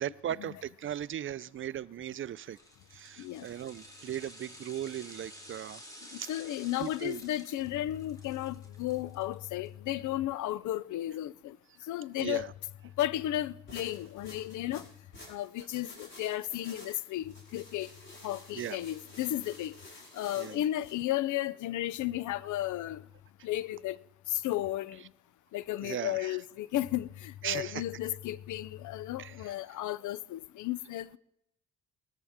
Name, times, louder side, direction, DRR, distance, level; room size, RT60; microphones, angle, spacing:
voice 1, 0.0-2.6 2.9-5.8 6.1-6.3 6.8-7.2 12.2-12.5 18.5-18.8 20.3-20.6 25.8-26.4 27.4-27.8 29.2-29.4, right 10 dB, 45° right, 0.4 m, -37 dB
sound 1, 2.4-9.7 10.0-10.1, equal, 10° left, 2.7 m, -52 dB
voice 2, 6.3-11.6 11.9-12.5 13.0-14.9 15.3-17.9 18.2-19.7 20.1-23.0 23.4-24.0 24.3-25.0 25.5-31.2, left 14 dB, 75° left, 0.6 m, -34 dB
sound 2, 13.7-21.0, left 1 dB, 40° left, 5.7 m, -51 dB
19.0 x 13.5 x 3.5 m
cardioid pair, 90°, 30 cm